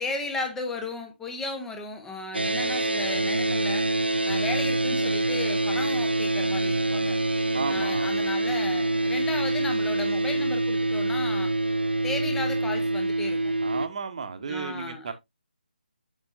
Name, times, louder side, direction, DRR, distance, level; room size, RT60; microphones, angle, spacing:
voice 1, 0.0-3.9 4.2-7.2 7.7-11.5 12.0-13.5 14.5-15.1, left 3 dB, 5° left, 0.9 m, -35 dB
sound 1, 2.3-13.9, right 2 dB, 80° right, 0.5 m, -25 dB
voice 2, 7.5-8.3 13.6-15.1, right 5 dB, 40° right, 1.1 m, -34 dB
7.0 x 6.2 x 2.6 m
figure-of-eight pair, 145°, 5 cm